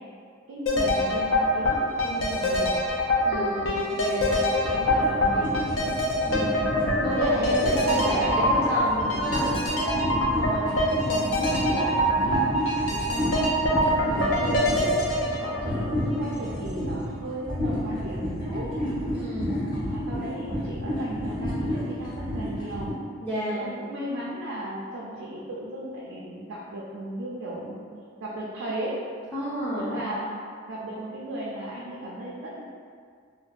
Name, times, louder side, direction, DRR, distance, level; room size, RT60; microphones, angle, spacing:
voice 1, 0.5-2.7 4.6-5.6 7.1-8.7 9.0-13.5 14.0-15.0 15.4-18.7 19.7-22.9 23.6-27.9 28.2-29.0 29.8-30.4 30.7-32.6, right 1 dB, 85° right, -5 dB, 0.4 m, -35 dB
sound 1, 0.7-16.6 16.9-17.0, equal, 80° left, 0.4 m, -25 dB
voice 2, 3.3-4.3 6.2-6.8 7.0-9.7 11.0-11.4 19.1-19.7 23.2-23.6 29.3-30.0, equal, 10° left, -11 dB, 0.3 m, -31 dB
sound 2, 4.6-22.9, equal, 40° left, 1.1 m, -31 dB
2.6 x 2.1 x 2.3 m, 2.1 s
head